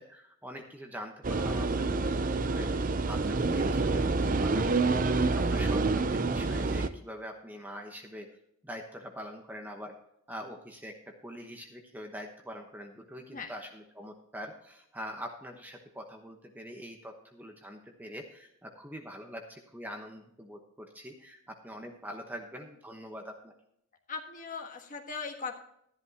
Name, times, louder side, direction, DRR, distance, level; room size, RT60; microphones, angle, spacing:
voice 1, 0.0-1.9 2.3-2.7 3.1-5.0 5.3-8.3 8.6-9.9 10.3-23.5, equal, 10° right, 3 dB, 1.0 m, -44 dB
sound 1, 1.2-6.9, right 3 dB, 35° right, 0.5 m, -27 dB
voice 2, 24.1-25.6, left 5 dB, 35° left, 3 dB, 1.4 m, -39 dB
13.0 x 11.0 x 2.9 m, 0.74 s
head